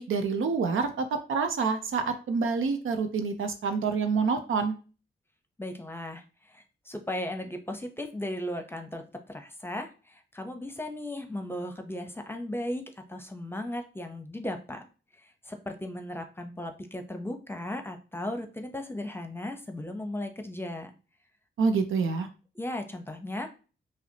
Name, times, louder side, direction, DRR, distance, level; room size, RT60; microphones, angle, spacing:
voice 1, 0.0-4.8 21.6-22.3, right 5 dB, 75° right, 7 dB, 0.6 m, -27 dB
voice 2, 5.6-12.8 13.1-14.9 15.2-20.9 22.6-23.5, left 1 dB, 10° left, 5 dB, 0.8 m, -36 dB
5.7 x 2.0 x 2.8 m, 0.35 s
cardioid pair, 50°, 21 cm